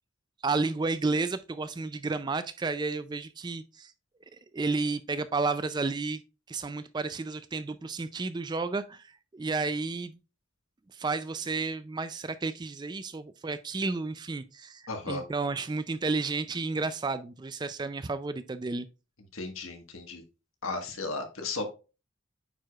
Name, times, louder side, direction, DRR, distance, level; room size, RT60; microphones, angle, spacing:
voice 1, 0.4-3.9 4.3-6.2 6.5-10.2 10.9-18.9, right 3 dB, 20° right, 0.3 m, -32 dB
voice 2, 14.9-15.2 19.3-20.2 20.6-21.6, left 3 dB, 80° left, 1.4 m, -35 dB
8.9 x 4.7 x 2.3 m
head